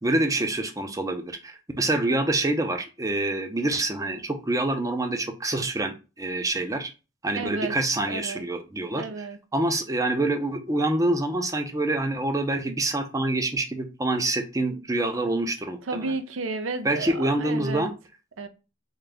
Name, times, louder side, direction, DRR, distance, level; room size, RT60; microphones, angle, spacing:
voice 1, 0.0-6.9 7.2-9.3 9.5-16.1 16.8-17.9, right 2 dB, 15° right, 0.5 m, -26 dB
voice 2, 7.4-7.7 8.1-8.5 8.9-9.4 15.9-17.9 18.4-18.5, right 3 dB, 70° right, 0.6 m, -32 dB
3.7 x 2.7 x 3.4 m
head